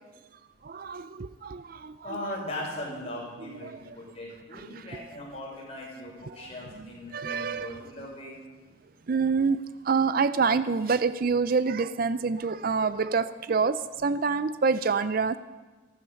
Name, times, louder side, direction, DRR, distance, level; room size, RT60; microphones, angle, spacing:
voice 1, 0.6-1.9 3.6-3.7 4.5-4.6 7.1-7.7 9.1-9.6 9.8-15.4, right 5 dB, 45° right, 14 dB, 0.4 m, -26 dB
voice 2, 2.0-8.4, left 1 dB, 30° left, -4 dB, 5.8 m, -39 dB
14.5 x 14.5 x 6.9 m, 1.3 s
head